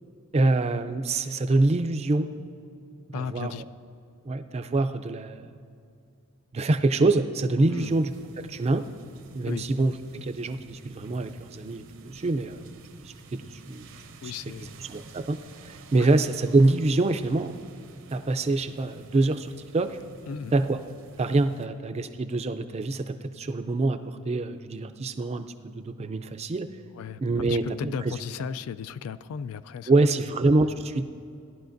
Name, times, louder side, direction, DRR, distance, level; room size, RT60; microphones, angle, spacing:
voice 1, 0.3-2.3 3.1-3.6 4.3-5.4 6.5-8.8 9.3-12.7 13.0-13.4 13.7-13.9 14.8-17.5 18.1-20.0 20.5-20.8 21.2-26.7 27.2-28.1 29.9-31.0, right 2 dB, 30° right, 8 dB, 0.4 m, -25 dB
voice 2, 3.1-3.6 7.7-8.0 9.4-9.7 14.2-14.8 16.0-16.1 20.3-20.5 27.0-27.2 27.5-29.9, left 7 dB, 75° left, 15 dB, 0.3 m, -35 dB
sound 1, 7.7-21.7, right 2 dB, 60° right, 0.7 m, -49 dB
17.5 x 11.5 x 2.6 m, 2.5 s
head